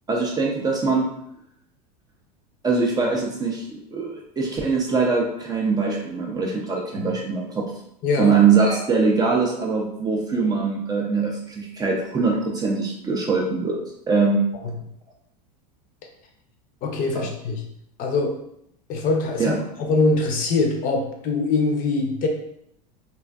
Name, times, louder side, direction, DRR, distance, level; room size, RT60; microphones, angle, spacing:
voice 1, 0.1-1.1 2.6-7.7 8.1-13.8 14.1-14.5 17.1-17.3 19.4-19.6, right 4 dB, 20° right, -1 dB, 0.3 m, -22 dB
voice 2, 8.0-8.3 14.6-14.7 16.8-17.6 18.0-18.4 18.9-22.3, left 3 dB, 40° left, 2 dB, 0.5 m, -23 dB
2.5 x 2.3 x 2.2 m, 0.74 s
supercardioid pair, 115°, 21 cm